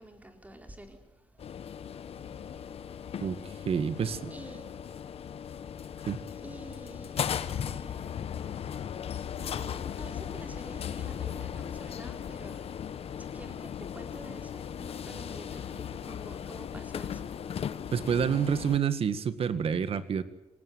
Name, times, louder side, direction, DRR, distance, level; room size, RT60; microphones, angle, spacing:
voice 1, 0.0-1.9 2.3-2.8 4.3-4.7 5.9-6.0 6.3-12.7 13.1-17.4, right 1 dB, 15° right, 5 dB, 4.3 m, -49 dB
sound 1, 1.4-18.8, left 8 dB, 65° left, 1.2 m, -37 dB
voice 2, 3.2-4.3 6.1-6.2 17.9-20.2, right 7 dB, 60° right, 12 dB, 1.9 m, -28 dB
26.0 x 19.0 x 9.3 m, 0.97 s
cardioid pair, 115°, 11 cm